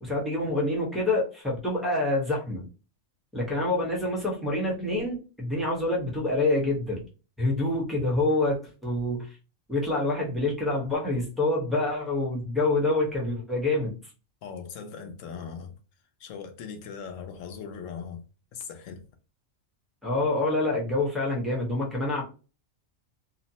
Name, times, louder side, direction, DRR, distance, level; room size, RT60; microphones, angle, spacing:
voice 1, 0.0-2.7 3.3-7.0 7.4-9.3 9.7-14.0 20.0-22.2, left 2 dB, ahead, 0.8 m, -26 dB
voice 2, 14.4-15.7 16.2-18.2 18.5-19.0, left 6 dB, 80° left, 1.0 m, -39 dB
2.8 x 2.0 x 2.7 m
omnidirectional pair, 1.3 m